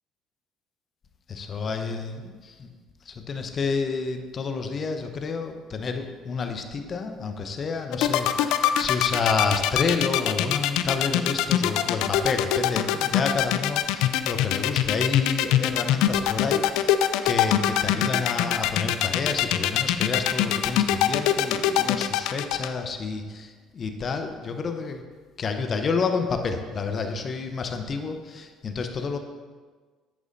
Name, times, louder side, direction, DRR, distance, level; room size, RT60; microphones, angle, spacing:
voice 1, 1.3-2.7 3.1-16.9 17.2-25.0 25.4-29.2, left 4 dB, 45° left, 6 dB, 0.8 m, -29 dB
sound 1, 7.9-22.7, left 12 dB, 70° left, 0.4 m, -22 dB
10.0 x 8.4 x 2.7 m, 1.4 s
hypercardioid pair, 55°, 0 cm